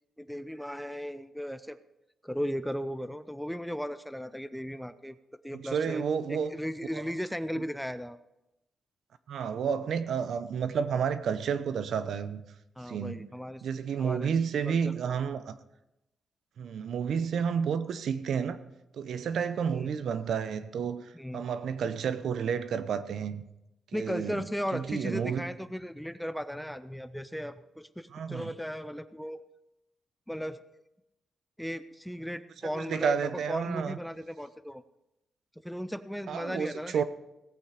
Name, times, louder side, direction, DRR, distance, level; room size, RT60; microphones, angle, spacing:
voice 1, 0.2-1.8 2.2-5.2 5.4-6.0 6.3-8.2 12.8-13.6 14.0-14.3 14.7-15.2 19.7-19.9 21.1-21.4 23.9-29.4 30.3-30.6 31.6-34.8 35.6-37.0, equal, ahead, 0.5 m, -36 dB
voice 2, 5.5-6.5 9.3-12.4 12.9-13.3 13.6-15.5 16.6-18.6 18.9-23.4 23.9-24.4 24.7-25.5 28.1-28.5 32.7-34.0 36.3-37.0, right 7 dB, 70° right, 0.8 m, -31 dB
17.5 x 8.5 x 5.0 m
cardioid pair, 115°, 0 cm